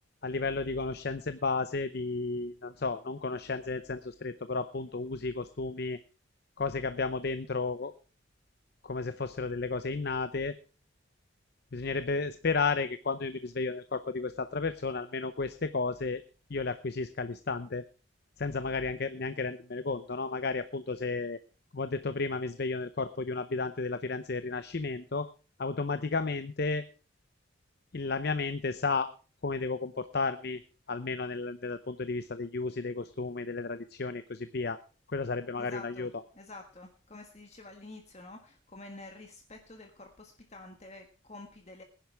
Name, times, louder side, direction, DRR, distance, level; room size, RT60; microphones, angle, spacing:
voice 1, 0.2-6.0 6.6-7.9 8.8-10.6 11.7-16.2 16.5-17.8 18.4-21.4 21.7-25.3 25.6-26.8 27.9-29.1 29.4-30.6 30.9-34.8 35.1-36.1, left 4 dB, 55° left, 12 dB, 0.7 m, -33 dB
voice 2, 35.6-36.1 36.3-41.8, left 2 dB, 35° left, 3 dB, 1.6 m, -48 dB
20.0 x 10.5 x 3.4 m, 0.35 s
head